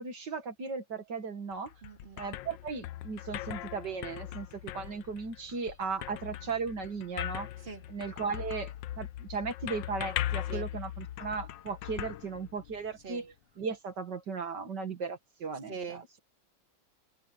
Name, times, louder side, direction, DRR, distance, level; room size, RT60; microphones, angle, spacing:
voice 1, 0.0-1.7 2.2-7.5 7.9-16.2, right 5 dB, 65° right, 2.4 m, -37 dB
sound 1, 1.5-13.0, left 13 dB, 80° left, 1.4 m, -39 dB
voice 2, 1.8-2.2 7.6-7.8 10.5-10.6 13.0-13.3 15.7-16.0, right 5 dB, 30° right, 2.4 m, -42 dB
omnidirectional pair, 2.0 m